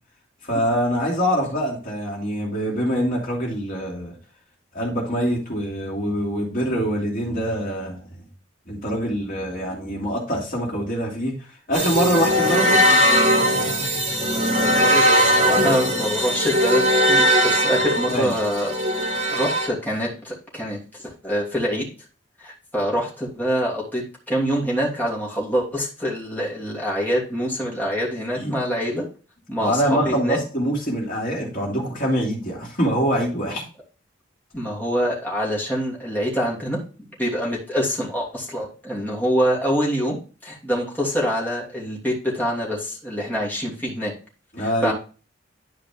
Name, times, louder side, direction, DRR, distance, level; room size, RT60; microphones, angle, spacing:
voice 1, 0.4-4.2 4.7-8.0 8.7-11.4 11.7-13.0 18.1-18.3 28.4-28.5 29.6-33.6 44.5-44.9, equal, 50° left, -2 dB, 2.7 m, -24 dB
sound 1, 11.7-19.7, equal, 40° right, 3.0 m, -19 dB
voice 2, 14.5-21.8 22.4-29.0 29.5-30.4 34.5-36.8 37.2-40.2 40.4-44.1 44.6-44.9, equal, 10° left, -5 dB, 2.9 m, -25 dB
11.0 x 5.0 x 3.5 m, 0.35 s
head